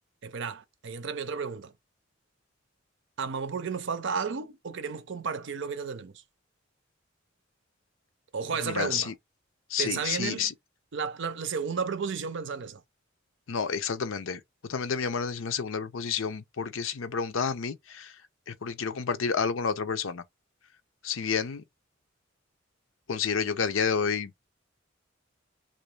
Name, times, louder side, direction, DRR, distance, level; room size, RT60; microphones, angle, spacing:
voice 1, 0.2-1.7 3.2-6.1 8.3-9.1 9.8-10.5 10.9-12.8, right 5 dB, 65° right, 0.6 m, -33 dB
voice 2, 8.6-9.1 9.7-10.5 13.5-14.4 14.7-18.1 18.5-20.2 21.0-21.6 23.1-24.5, left 6 dB, 90° left, 0.6 m, -30 dB
3.0 x 2.6 x 3.2 m
head